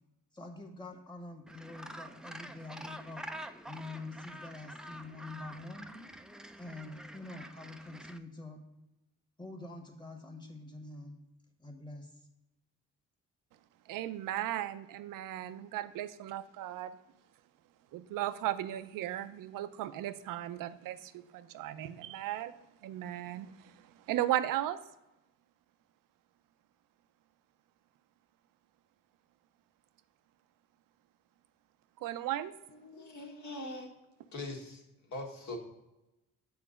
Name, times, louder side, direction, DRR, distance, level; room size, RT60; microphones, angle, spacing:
voice 1, 0.3-3.2 3.7-6.1 6.6-8.6 9.4-11.2 11.6-12.1, left 2 dB, 15° left, 1.3 m, -46 dB
Gull seagull, 1.5-8.2, right 1 dB, ahead, 0.3 m, -47 dB
voice 2, 13.9-16.9 17.9-22.5 22.8-23.5 24.1-24.8 32.0-32.5, right 13 dB, 80° right, 0.5 m, -36 dB
voice 3, 32.7-33.9 34.3-35.6, left 2 dB, 60° left, 1.6 m, -42 dB
7.0 x 4.0 x 5.0 m
cardioid pair, 90°, 32 cm